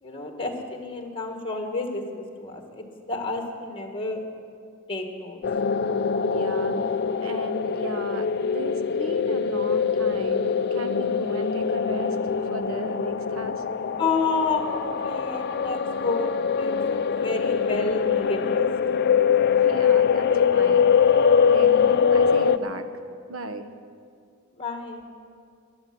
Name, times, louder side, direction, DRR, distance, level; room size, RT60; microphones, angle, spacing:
voice 1, 0.0-4.2 4.9-5.4 14.0-18.7 24.5-25.1, left 3 dB, 25° left, 4 dB, 1.6 m, -30 dB
sound 1, 5.4-22.6, left 6 dB, 55° left, 0.5 m, -23 dB
voice 2, 6.1-6.8 7.2-12.2 12.5-13.6 19.6-20.9 21.4-22.9 23.3-23.7, right 2 dB, 80° right, 9 dB, 0.9 m, -36 dB
14.5 x 10.5 x 7.6 m, 2.3 s
head